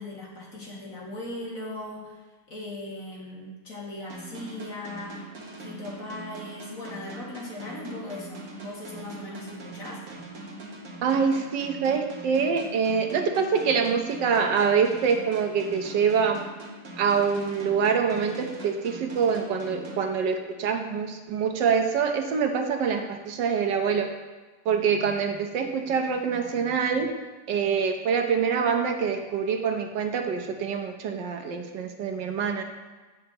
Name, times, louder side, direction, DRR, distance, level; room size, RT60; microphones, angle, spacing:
voice 1, 0.0-2.2 2.5-5.2 5.6-10.0, left 2 dB, 50° left, -4 dB, 2.5 m, -38 dB
sound 1, 4.1-20.7, right 2 dB, 55° right, 1.8 m, -42 dB
voice 2, 11.0-16.4 17.0-24.1 24.6-27.1 27.5-32.6, right 6 dB, 85° right, 5 dB, 1.6 m, -25 dB
15.5 x 6.6 x 3.0 m, 1.3 s
omnidirectional pair, 1.9 m